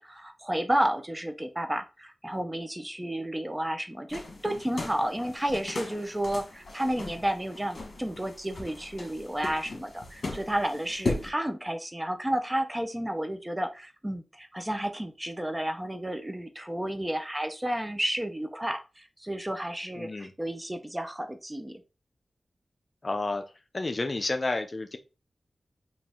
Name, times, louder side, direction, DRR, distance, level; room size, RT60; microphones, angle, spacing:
voice 1, 0.0-21.8, right 1 dB, 15° right, 0.6 m, -31 dB
sound 1, 4.1-11.3, left 2 dB, 65° left, 1.4 m, -38 dB
voice 2, 20.0-20.3 23.0-23.5 23.7-25.0, left 2 dB, 45° left, 0.5 m, -30 dB
4.0 x 2.5 x 3.6 m
cardioid pair, 60°, 0 cm